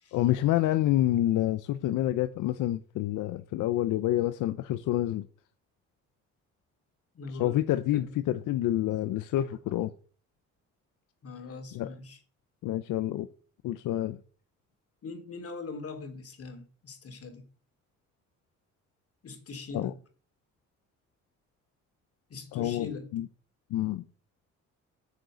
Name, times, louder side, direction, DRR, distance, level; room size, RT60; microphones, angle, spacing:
voice 1, 0.1-5.3 7.4-9.9 11.7-11.9 12.6-13.3 13.6-14.2 19.7-19.9 22.5-23.3 23.7-24.0, left 14 dB, 85° left, 0.7 m, -28 dB
voice 2, 7.2-7.6 7.9-8.0 11.2-12.2 15.0-17.4 19.2-19.9 22.3-23.1, left 4 dB, 50° left, 3.5 m, -41 dB
9.3 x 6.6 x 7.9 m
cardioid pair, 90°, 30 cm